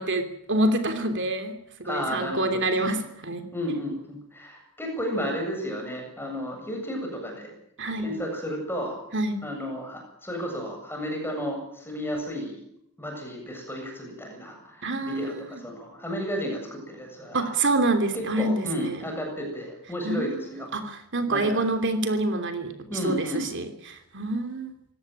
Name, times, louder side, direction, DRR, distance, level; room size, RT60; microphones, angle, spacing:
voice 1, 0.0-1.5 1.9-3.4 7.8-8.1 9.1-9.4 14.8-15.3 17.3-19.0 20.0-20.5 20.7-22.7 23.0-24.7, right 2 dB, 55° right, 7 dB, 3.1 m, -26 dB
voice 2, 1.8-2.6 2.9-3.0 3.5-7.5 8.0-9.0 9.4-12.6 13.0-17.5 18.1-20.7 21.3-21.7 22.9-23.5, equal, 10° left, 2 dB, 7.8 m, -33 dB
25.5 x 17.5 x 9.3 m, 0.74 s
head